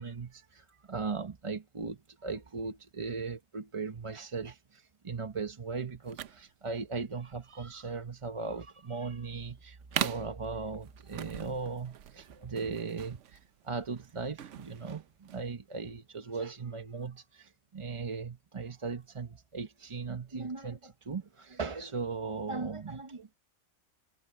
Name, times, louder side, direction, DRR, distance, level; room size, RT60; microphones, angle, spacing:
voice 1, 0.0-23.3, right 4 dB, 30° right, 0.7 m, -38 dB
sound 1, 6.0-15.5, right 10 dB, 75° right, 1.1 m, -41 dB
omnidirectional pair, 1.2 m